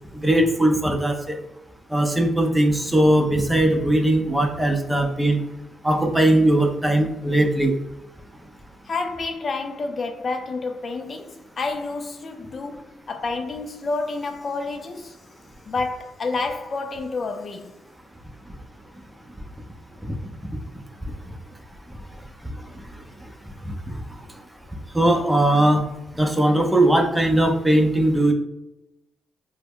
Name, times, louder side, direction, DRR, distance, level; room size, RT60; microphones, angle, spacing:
voice 1, 0.2-1.4 1.9-5.4 5.8-7.7 20.0-20.1 23.6-24.0 24.9-25.8 26.1-28.3, right 1 dB, 10° right, 0.6 m, -19 dB
voice 2, 8.8-15.2 15.7-17.8, left 3 dB, 50° left, 0.3 m, -29 dB
2.0 x 2.0 x 3.6 m
supercardioid pair, 50°, 0 cm